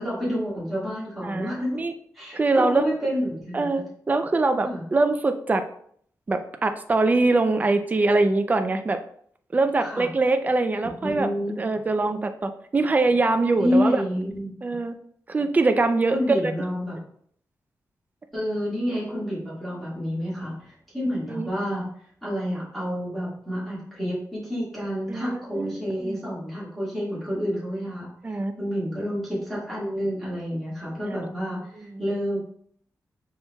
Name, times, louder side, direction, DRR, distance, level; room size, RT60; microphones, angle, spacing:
voice 1, 0.0-1.8 2.1-3.8 4.6-4.8 9.8-10.1 11.0-11.6 13.5-14.6 16.1-17.0 18.3-21.8 22.2-28.1 28.6-32.4, equal, ahead, -9 dB, 1.8 m, -29 dB
voice 2, 1.2-1.9 2.3-3.0 3.5-5.6 6.3-9.0 9.5-11.3 11.6-14.0 14.6-14.9 15.3-16.2 21.3-21.5 25.1-26.2 28.2-28.5 31.0-31.3 31.8-32.0, right 3 dB, 25° right, 8 dB, 0.4 m, -23 dB
5.3 x 4.3 x 2.2 m, 0.62 s
wide cardioid pair, 170°, 7 cm